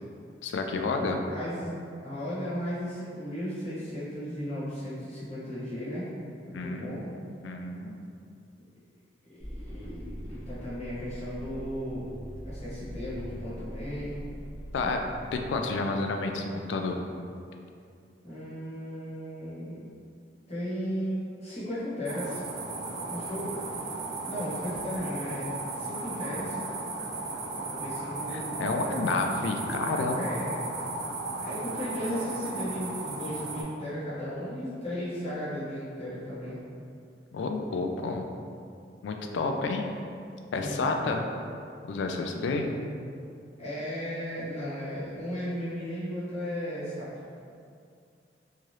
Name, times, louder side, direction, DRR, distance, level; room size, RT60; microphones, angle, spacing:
voice 1, 0.4-1.2 6.5-7.1 7.4-8.0 14.7-15.0 15.3-17.0 28.3-30.3 37.3-38.3 39.0-39.9 40.5-41.3 41.8-42.7, left 3 dB, 85° left, 4 dB, 0.3 m, -30 dB
voice 2, 1.0-1.7 2.0-6.1 6.4-7.0 9.2-12.1 12.4-14.2 14.8-14.9 18.2-19.8 20.5-22.4 23.1-23.7 24.2-25.5 25.7-26.6 27.5-29.0 30.1-30.7 31.4-36.6 40.6-41.0 43.6-47.1, equal, 35° left, -10 dB, 1.1 m, -35 dB
sound 1, 9.4-15.4, equal, 10° left, 0.7 m, -42 dB
sound 2, 22.1-33.6, right 3 dB, 65° right, 0.4 m, -35 dB
2.7 x 2.4 x 3.1 m, 2.4 s
head